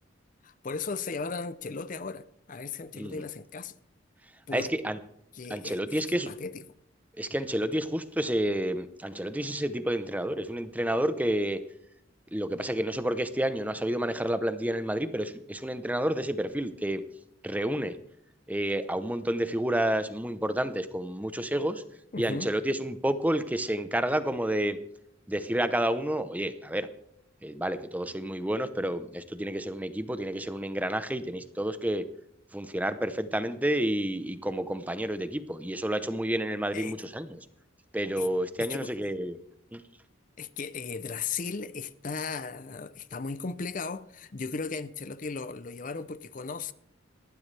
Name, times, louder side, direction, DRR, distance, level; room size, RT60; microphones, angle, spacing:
voice 1, 0.4-3.7 4.5-4.7 5.3-6.6 22.1-22.5 36.7-37.0 38.2-38.3 38.6-38.9 40.4-46.7, left 4 dB, 40° left, 0.6 m, -36 dB
voice 2, 4.5-5.0 5.5-6.3 7.2-11.6 12.3-17.0 17.4-17.9 18.5-21.8 22.2-24.8 25.3-26.9 27.4-32.0 32.5-37.3 37.9-39.4 39.7-39.8, right 1 dB, 10° right, 0.8 m, -30 dB
19.5 x 14.0 x 3.4 m
head